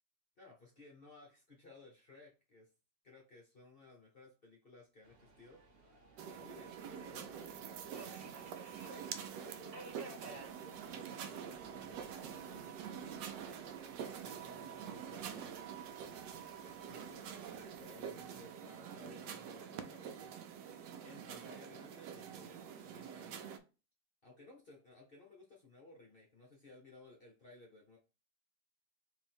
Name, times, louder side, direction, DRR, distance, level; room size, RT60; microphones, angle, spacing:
voice 1, 0.4-2.7 3.0-8.2 8.8-10.0 10.3-15.7 16.3-23.5 24.2-28.0, left 2 dB, 45° left, -2 dB, 0.8 m, -59 dB
Subway metro underground, 5.0-18.1, right 2 dB, 45° right, 0.8 m, -59 dB
sound 1, 6.2-23.6, right 8 dB, 75° right, 1.1 m, -46 dB
3.8 x 2.7 x 4.3 m, 0.32 s
omnidirectional pair, 1.9 m